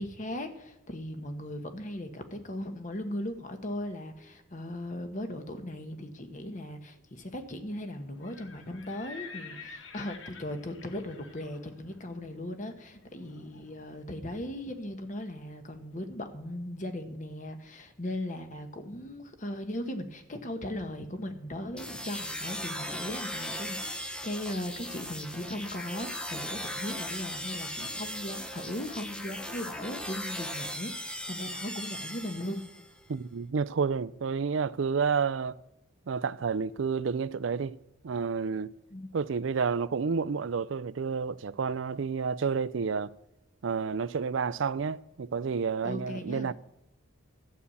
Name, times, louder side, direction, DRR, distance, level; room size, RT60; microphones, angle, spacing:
voice 1, 0.0-32.6 38.9-39.1 45.8-46.5, left 1 dB, 40° left, 1.2 m, -38 dB
Livestock farm animals working animals, 8.1-13.9, left 5 dB, 75° left, 1.2 m, -49 dB
sound 1, 21.8-32.9, equal, 5° left, 0.7 m, -38 dB
voice 2, 33.1-35.6 36.1-37.8 38.0-38.7 39.1-43.1 43.6-46.5, right 5 dB, 75° right, 0.5 m, -30 dB
12.0 x 5.6 x 8.4 m
head